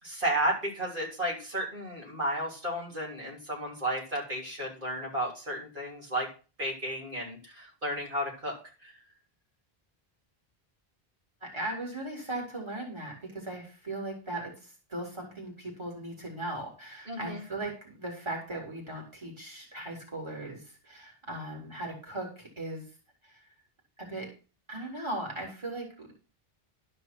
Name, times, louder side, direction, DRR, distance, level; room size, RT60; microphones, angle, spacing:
voice 1, 0.0-6.3 6.6-8.6 8.8-8.9 17.1-17.4, right 1 dB, 55° right, -5 dB, 3.7 m, -33 dB
voice 2, 11.4-22.8 23.2-23.4 24.0-24.3 24.7-26.1, right 2 dB, 25° right, -1 dB, 3.8 m, -38 dB
12.5 x 5.4 x 6.0 m, 0.35 s
omnidirectional pair, 1.0 m